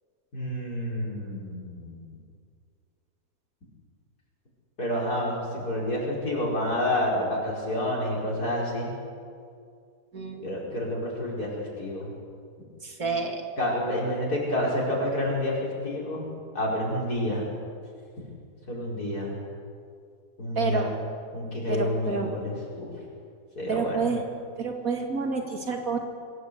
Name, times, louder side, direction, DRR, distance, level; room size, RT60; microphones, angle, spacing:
voice 1, 0.3-2.1 4.8-8.9 10.4-12.1 13.6-16.3 16.5-17.5 18.7-19.3 20.4-20.8 21.3-22.9 23.6-24.0, left 1 dB, 60° left, -4 dB, 5.6 m, -29 dB
voice 2, 10.1-10.5 12.8-13.4 20.6-20.9 21.7-22.3 23.7-24.2 24.6-26.0, right 5 dB, 55° right, 3 dB, 2.9 m, -29 dB
25.0 x 17.0 x 8.4 m, 2.2 s
omnidirectional pair, 1.8 m